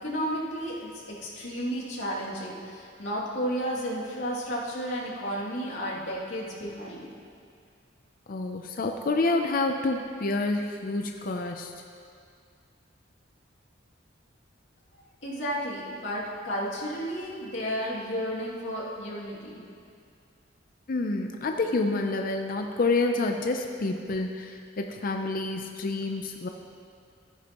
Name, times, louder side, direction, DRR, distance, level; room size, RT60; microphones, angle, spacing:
voice 1, 0.0-7.1 15.2-19.6, equal, 80° left, -6 dB, 2.5 m, -32 dB
voice 2, 8.3-11.7 20.9-26.5, left 3 dB, 50° left, 4 dB, 0.5 m, -28 dB
14.0 x 10.5 x 3.0 m, 2.3 s
head